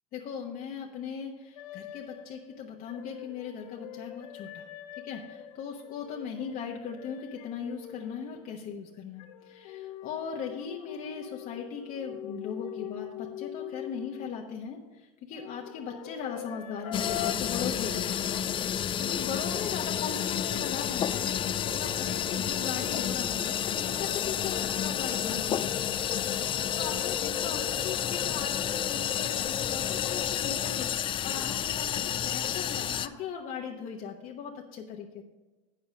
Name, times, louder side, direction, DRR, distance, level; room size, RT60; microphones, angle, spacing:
voice 1, 0.1-18.3 19.0-25.9 26.7-35.2, left 6 dB, 50° left, 0 dB, 1.0 m, -39 dB
sound 1, 1.6-8.7 9.2-14.4 15.3-17.3, left 12 dB, 90° left, 0.8 m, -42 dB
sound 2, 16.9-33.1, left 9 dB, 30° left, 0.3 m, -30 dB
8.5 x 7.5 x 5.1 m, 1.2 s
supercardioid pair, 105°, 18 cm